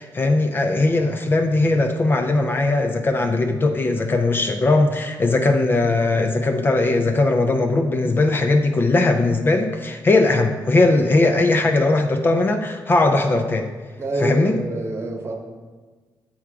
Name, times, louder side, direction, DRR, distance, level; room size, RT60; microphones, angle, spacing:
voice 1, 0.0-13.7 14.2-14.6, left 2 dB, 25° left, 5 dB, 0.4 m, -19 dB
voice 2, 14.0-15.3, right 2 dB, 35° right, 2 dB, 0.9 m, -26 dB
7.3 x 3.5 x 4.7 m, 1.4 s
cardioid pair, 125°, 8 cm